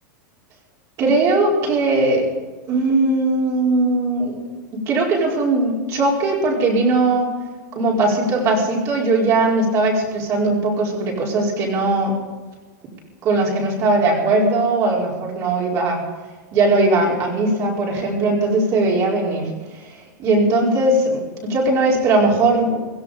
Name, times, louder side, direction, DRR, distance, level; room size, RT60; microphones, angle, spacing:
voice 1, 1.0-2.2 2.7-4.4 4.7-7.3 7.7-12.1 13.2-16.0 16.5-22.8, right 2 dB, 30° right, -2 dB, 4.6 m, -19 dB
17.0 x 15.0 x 5.1 m, 1.3 s
supercardioid pair, 160°, 10 cm